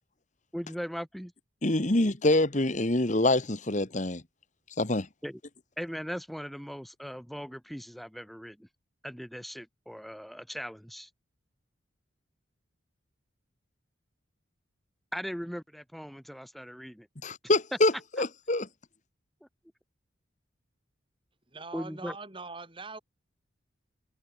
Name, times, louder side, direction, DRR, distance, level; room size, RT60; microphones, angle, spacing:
voice 1, 0.5-1.3 5.2-5.4 5.8-8.7 9.0-11.1 15.1-17.1 21.7-22.2, equal, ahead, 5.3 m, -39 dB
voice 2, 1.6-4.2 4.8-5.1 17.2-17.9 18.2-18.7, left 2 dB, 35° left, 1.5 m, -25 dB
voice 3, 21.5-23.0, right 3 dB, 25° right, 3.6 m, -42 dB
head